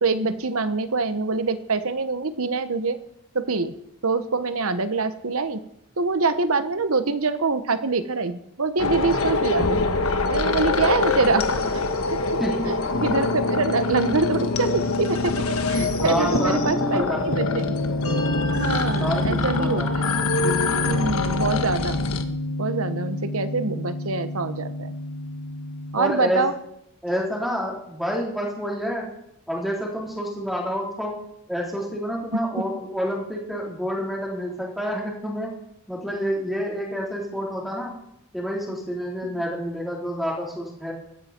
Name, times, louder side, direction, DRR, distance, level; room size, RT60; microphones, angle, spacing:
voice 1, 0.0-3.0 3.3-3.7 4.0-5.6 6.0-9.8 10.2-11.8 12.1-12.2 12.7-15.4 15.7-17.7 18.5-20.0 20.7-22.0 22.6-24.9 25.9-26.5 32.3-32.4, right 3 dB, 70° right, 11 dB, 1.1 m, -25 dB
sound 1, 8.8-22.2, left 3 dB, 75° left, 1.4 m, -25 dB
voice 2, 12.4-12.7 16.0-17.4 19.0-20.1 25.9-26.4 27.0-29.1 29.5-31.1 31.5-35.5 35.9-37.9 38.3-40.9, equal, ahead, -3 dB, 3.9 m, -28 dB
sound 2, 12.9-26.0, left 2 dB, 55° left, 1.4 m, -29 dB
16.5 x 13.5 x 4.5 m, 0.77 s
head